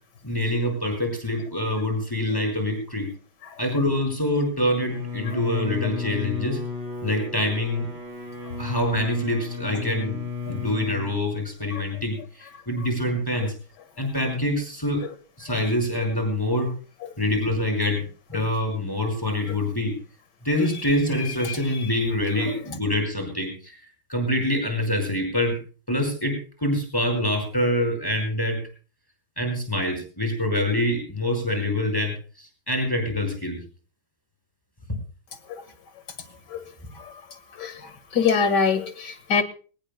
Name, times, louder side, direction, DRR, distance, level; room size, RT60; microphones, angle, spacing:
voice 1, 0.2-3.1 3.6-6.6 7.0-7.9 8.6-10.2 10.5-13.5 14.0-15.0 15.4-16.7 17.2-20.0 20.4-23.8 24.1-25.6 25.9-28.6 29.4-33.6, left 1 dB, 10° left, 3 dB, 5.2 m, -25 dB
Bowed string instrument, 4.9-11.2, left 4 dB, 70° right, 6.2 m, -33 dB
voice 2, 21.4-21.8 22.4-22.5 35.5-35.6 36.5-36.6 37.0-37.1 37.6-39.4, left 5 dB, 55° left, 10 dB, 2.3 m, -25 dB
23.0 x 18.5 x 2.3 m, 0.38 s
omnidirectional pair, 2.2 m